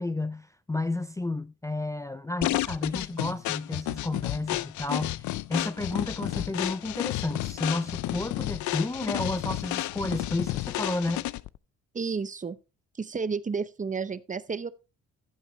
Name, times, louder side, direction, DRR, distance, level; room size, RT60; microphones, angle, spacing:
voice 1, 0.0-5.2 5.5-11.3, left 2 dB, 10° left, 0.5 m, -31 dB
sound 1, 2.4-11.6, left 16 dB, 75° left, 0.5 m, -31 dB
voice 2, 11.9-12.6 12.9-14.7, right 5 dB, 25° right, 0.7 m, -31 dB
14.5 x 7.9 x 3.1 m
cardioid pair, 90°, 30 cm